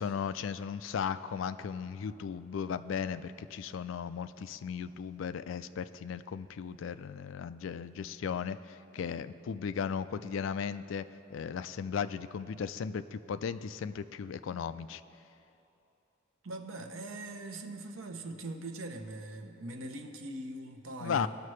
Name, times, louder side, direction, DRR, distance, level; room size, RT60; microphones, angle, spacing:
voice 1, 0.0-11.1 11.3-15.0 21.0-21.3, left 7 dB, 70° left, 13 dB, 0.3 m, -36 dB
voice 2, 16.4-21.3, right 2 dB, 90° right, 5 dB, 0.8 m, -41 dB
18.5 x 6.6 x 3.2 m, 2.9 s
head